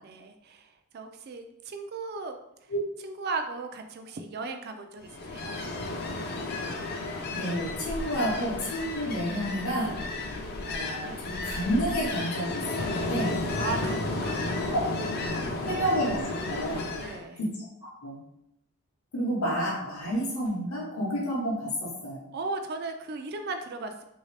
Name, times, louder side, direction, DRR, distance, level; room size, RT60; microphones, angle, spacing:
voice 1, 0.0-2.4 3.0-5.6 13.6-14.8 17.0-17.4 22.3-24.0, right 3 dB, 45° right, 6 dB, 0.3 m, -36 dB
Ocean, 5.0-17.2, left 2 dB, 45° left, 0.4 m, -33 dB
voice 2, 7.3-10.0 10.7-13.4 14.7-14.9 15.6-16.2 16.5-16.9 17.4-17.5 18.0-18.2 19.1-22.2, equal, 65° left, -4 dB, 0.8 m, -30 dB
3.1 x 2.7 x 3.2 m, 0.83 s
head